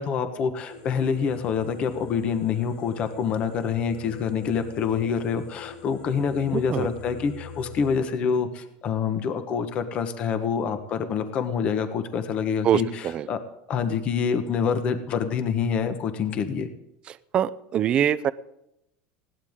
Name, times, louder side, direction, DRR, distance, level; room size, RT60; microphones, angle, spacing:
voice 1, 0.0-13.4 13.7-16.7, left 6 dB, 30° left, 9 dB, 1.2 m, -26 dB
sound 1, 0.7-8.0, left 5 dB, 65° left, 2.6 m, -43 dB
voice 2, 6.5-6.9 12.6-13.3 17.1-18.3, right 10 dB, 25° right, 15 dB, 0.5 m, -24 dB
20.0 x 17.5 x 3.7 m, 0.81 s
cardioid pair, 175°, 4 cm